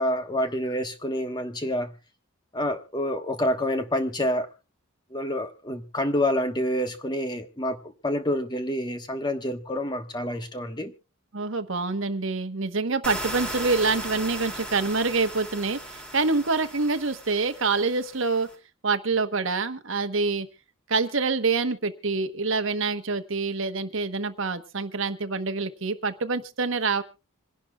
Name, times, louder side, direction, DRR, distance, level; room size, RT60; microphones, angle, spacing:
voice 1, 0.0-1.9 2.5-4.5 5.1-10.9, left 1 dB, 20° left, 1.2 m, -28 dB
voice 2, 11.3-18.5 18.8-20.5 20.9-27.0, right 4 dB, 65° right, 1.1 m, -26 dB
sound 1, 13.0-18.5, right 1 dB, 5° left, 2.6 m, -37 dB
26.0 x 11.5 x 2.3 m
head